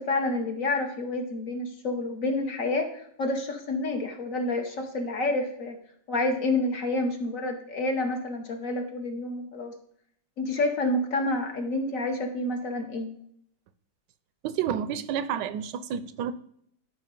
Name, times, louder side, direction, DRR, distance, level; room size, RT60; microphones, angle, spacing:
voice 1, 0.0-5.8 6.1-9.7 10.4-13.1, left 2 dB, 55° left, 4 dB, 1.2 m, -29 dB
voice 2, 14.4-16.3, right 9 dB, 80° right, 12 dB, 1.2 m, -30 dB
13.0 x 4.6 x 3.8 m, 0.68 s
omnidirectional pair, 1.9 m